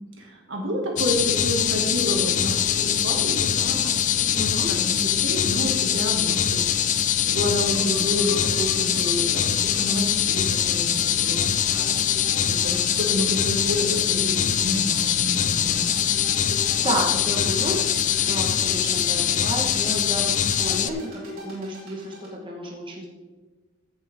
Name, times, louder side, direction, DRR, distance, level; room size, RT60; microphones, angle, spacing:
voice 1, 0.2-4.4 4.7-12.1 12.4-15.9, equal, 70° right, 0 dB, 2.3 m, -29 dB
sound 1, 1.0-20.9, left 9 dB, 35° left, 0.4 m, -23 dB
voice 2, 4.3-4.7 16.6-17.8 18.2-23.1, right 1 dB, 25° right, -2 dB, 1.5 m, -31 dB
sound 2, 7.6-22.3, right 1 dB, 90° right, 3.6 m, -41 dB
15.0 x 7.0 x 3.7 m, 1.3 s
head